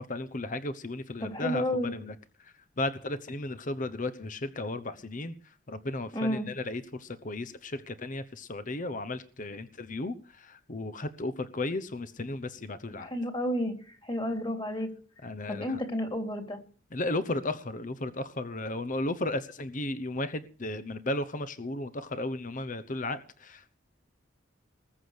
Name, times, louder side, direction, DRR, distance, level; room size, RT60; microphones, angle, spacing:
voice 1, 0.0-2.1 2.8-5.3 5.7-10.2 10.5-13.1 15.2-15.7 16.9-23.8, left 2 dB, 40° left, 12 dB, 1.0 m, -34 dB
voice 2, 1.2-1.9 6.1-6.5 13.0-13.7 14.0-14.9 15.5-16.6, equal, 25° left, 5 dB, 3.2 m, -31 dB
20.5 x 7.9 x 6.6 m, 0.41 s
head